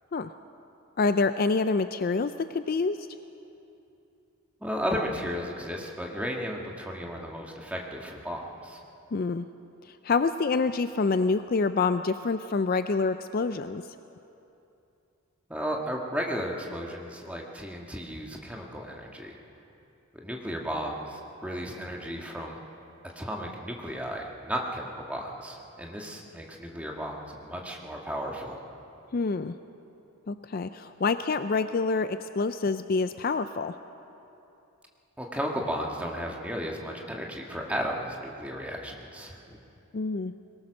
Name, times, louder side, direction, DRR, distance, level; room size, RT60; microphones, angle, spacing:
voice 1, 1.0-3.1 9.1-9.5 9.9-13.8 29.1-29.5 30.3-33.7 39.9-40.3, left 4 dB, 40° left, 11 dB, 0.4 m, -27 dB
voice 2, 4.6-8.8 15.5-19.4 20.1-22.6 23.1-28.6 35.2-39.6, equal, 5° right, 0 dB, 1.6 m, -34 dB
22.0 x 19.0 x 6.4 m, 2.8 s
head